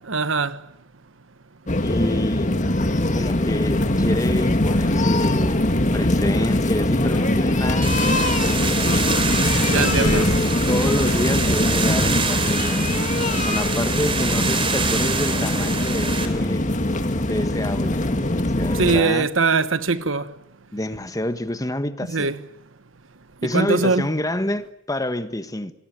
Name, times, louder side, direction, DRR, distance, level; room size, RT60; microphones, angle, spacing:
voice 1, 0.1-0.6 9.7-10.3 18.8-20.3 22.1-22.4 23.4-24.1, right 4 dB, 85° right, 1.3 m, -21 dB
sound 1, 1.7-19.0, left 1 dB, 40° left, 2.0 m, -21 dB
voice 2, 1.8-2.5 3.1-8.7 9.5-10.3 10.7-16.6 17.2-19.3 20.7-22.3 23.4-25.7, left 1 dB, 20° left, 1.5 m, -28 dB
sound 2, 7.8-16.3, right 4 dB, 30° right, 3.9 m, -26 dB
27.0 x 20.5 x 9.3 m
head